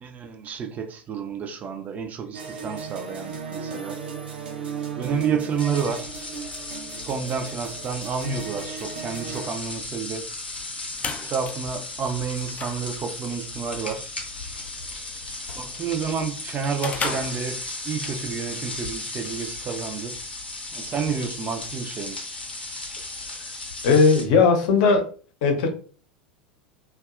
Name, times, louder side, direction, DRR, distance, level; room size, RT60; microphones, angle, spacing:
voice 1, 0.0-4.0 5.0-6.2 6.9-10.3 11.1-14.1 15.5-20.2 20.7-22.2, right 6 dB, 30° right, 0.5 m, -30 dB
sound 1, 2.3-9.5, right 6 dB, 70° right, 0.6 m, -35 dB
sound 2, 5.6-24.3, left 2 dB, 90° left, 0.6 m, -36 dB
sound 3, 10.6-18.1, left 5 dB, 25° left, 0.4 m, -38 dB
voice 2, 23.8-25.0 25.4-25.7, left 4 dB, 55° left, 0.7 m, -17 dB
2.6 x 2.3 x 2.4 m
figure-of-eight pair, 85°, 5 cm